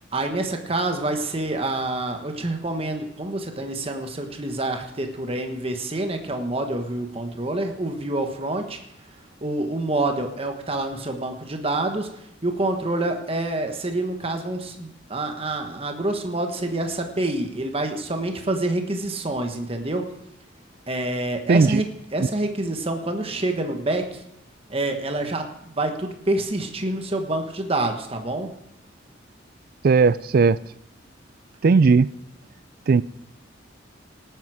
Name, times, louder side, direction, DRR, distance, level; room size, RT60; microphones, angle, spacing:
voice 1, 0.1-8.8 9.4-12.1 12.4-20.1 20.9-21.9 22.1-24.2 24.7-28.5, right 2 dB, 30° right, 1.3 m, -27 dB
voice 2, 21.5-21.8 22.2-22.3 29.8-30.6 31.6-32.1 32.9-33.0, right 4 dB, 50° right, 0.4 m, -16 dB
18.0 x 9.3 x 4.8 m
head